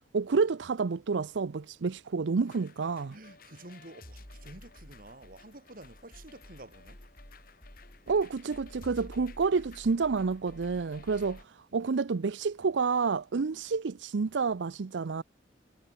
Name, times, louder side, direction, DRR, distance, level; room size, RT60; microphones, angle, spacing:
voice 1, 0.1-3.2 8.1-15.2, right 4 dB, 85° right, 0.5 m, -29 dB
sound 1, 2.5-11.4, left 1 dB, 50° left, 4.5 m, -51 dB
voice 2, 3.1-7.0, right 1 dB, 50° right, 2.8 m, -50 dB
head